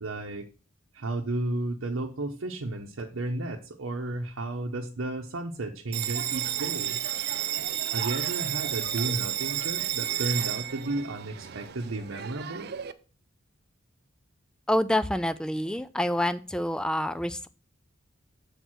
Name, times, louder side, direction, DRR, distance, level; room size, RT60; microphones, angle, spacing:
voice 1, 0.0-0.4 0.9-7.0 7.9-12.7, right 2 dB, 90° right, 1 dB, 0.8 m, -33 dB
Bell, 5.9-12.9, right 12 dB, 55° right, 0.5 m, -32 dB
voice 2, 14.7-17.5, left 1 dB, 5° left, 12 dB, 0.3 m, -27 dB
6.7 x 4.5 x 6.1 m, 0.37 s
head